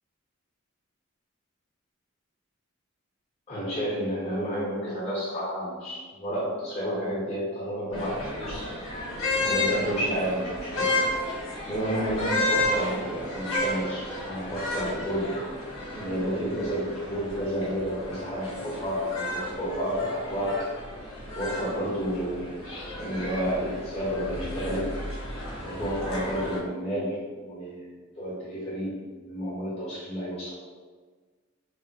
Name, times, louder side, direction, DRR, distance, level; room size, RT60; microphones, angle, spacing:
voice 1, 3.5-8.7 9.3-11.0 11.6-15.4 15.9-20.7 21.3-22.5 22.9-24.9 25.6-30.5, equal, 30° left, -7 dB, 0.8 m, -31 dB
sound 1, 7.9-26.6, left 1 dB, 85° left, 1.0 m, -32 dB
3.3 x 2.1 x 2.7 m, 1.4 s
head